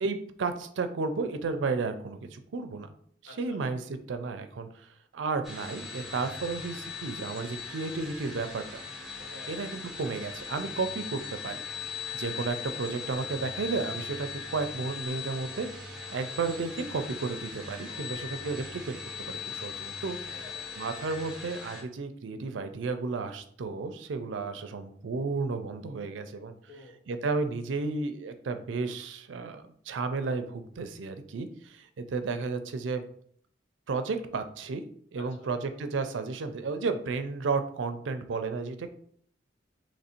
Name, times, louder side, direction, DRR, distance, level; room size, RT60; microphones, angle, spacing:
voice 1, 0.0-2.9 3.2-4.9 5.1-8.6 9.5-11.6 12.1-15.7 16.1-20.2 20.8-26.5 27.1-33.0 33.9-34.8 35.1-38.9, right 4 dB, 80° right, 9 dB, 0.4 m, -33 dB
voice 2, 3.3-3.6 9.2-9.7 17.9-18.4 20.2-20.6 26.7-27.0 35.2-35.5, left 2 dB, 70° left, 2 dB, 0.8 m, -50 dB
sound 1, 5.4-21.8, left 6 dB, ahead, 0.7 m, -39 dB
3.0 x 2.6 x 4.2 m, 0.62 s
head